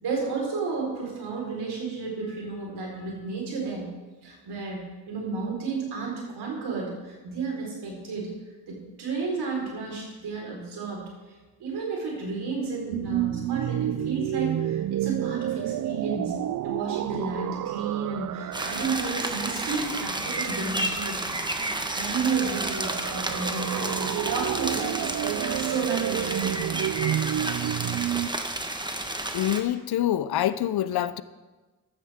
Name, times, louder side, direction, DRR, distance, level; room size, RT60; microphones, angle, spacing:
voice 1, 0.0-3.9 4.2-8.3 8.7-11.1 11.6-16.3 16.6-26.5, right 4 dB, 85° right, -1 dB, 4.4 m, -32 dB
sound 1, 12.9-28.3, right 12 dB, 55° right, 0.4 m, -31 dB
sound 2, 18.5-29.6, right 1 dB, 10° right, 1.3 m, -31 dB
voice 2, 29.3-31.2, left 12 dB, 75° left, 15 dB, 0.7 m, -26 dB
15.5 x 12.5 x 3.6 m, 1.2 s
cardioid pair, 70°, 39 cm